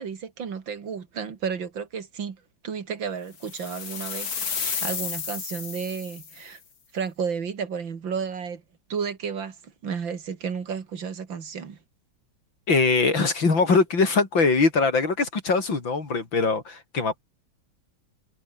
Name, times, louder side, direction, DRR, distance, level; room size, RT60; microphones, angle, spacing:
voice 1, 0.0-6.6 6.9-8.6 8.9-9.6 9.8-11.8, right 6 dB, 75° right, 2.9 m, -32 dB
sound 1, 3.4-6.4, left 6 dB, 50° left, 2.4 m, -32 dB
voice 2, 12.7-17.2, left 4 dB, 75° left, 4.7 m, -22 dB
omnidirectional pair, 2.1 m